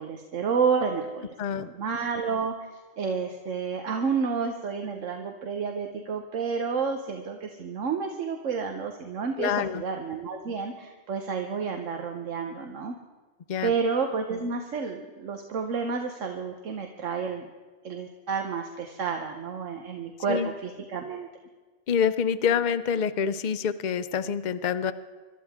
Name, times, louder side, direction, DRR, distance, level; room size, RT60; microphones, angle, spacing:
voice 1, 0.0-1.3 1.6-2.5 3.0-12.9 13.6-17.5 17.8-21.3, right 5 dB, 85° right, 4 dB, 1.3 m, -30 dB
voice 2, 1.4-1.7 9.4-9.8 13.5-13.7 20.3-20.5 21.9-24.9, left 7 dB, 50° left, 11 dB, 0.6 m, -26 dB
26.0 x 13.0 x 3.6 m, 1.4 s
omnidirectional pair, 1.3 m